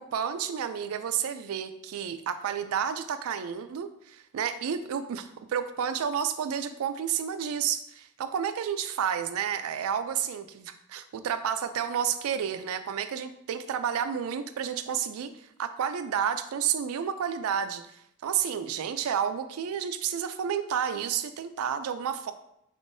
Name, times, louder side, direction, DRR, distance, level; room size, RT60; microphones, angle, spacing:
voice 1, 0.0-22.3, right 8 dB, 75° right, 10 dB, 0.3 m, -31 dB
4.3 x 3.5 x 2.6 m, 0.78 s
head